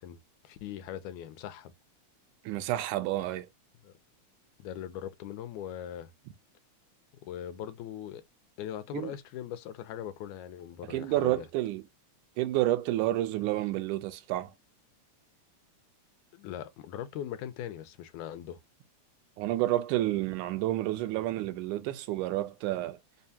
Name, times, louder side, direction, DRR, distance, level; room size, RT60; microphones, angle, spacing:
voice 1, 0.0-1.7 3.8-3.9 4.6-6.1 7.2-8.2 8.6-11.5 16.3-18.6, left 10 dB, 85° left, 2.1 m, -40 dB
voice 2, 2.5-3.5 8.9-9.1 10.9-11.8 12.4-14.5 19.4-23.0, right 15 dB, 90° right, 2.1 m, -30 dB
5.4 x 2.2 x 2.7 m
omnidirectional pair, 3.4 m